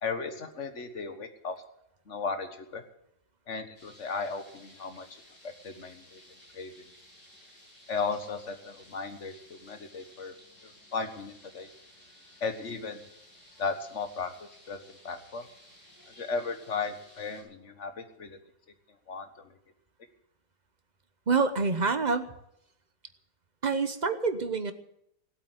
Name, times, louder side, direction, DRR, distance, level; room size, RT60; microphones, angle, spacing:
voice 1, 0.0-1.6 2.1-2.8 3.5-6.2 6.5-6.7 7.9-10.3 10.6-11.7 12.4-13.0 13.6-14.3 14.7-14.8 15.0-15.5 16.2-18.4 19.1-19.5, left 4 dB, 45° left, 8 dB, 1.7 m, -35 dB
sound 1, 3.8-17.4, left 1 dB, 70° left, 7.7 m, -56 dB
voice 2, 21.3-22.3 23.6-24.7, right 4 dB, 35° right, 10 dB, 0.7 m, -27 dB
18.5 x 8.5 x 8.0 m, 0.77 s
omnidirectional pair, 1.9 m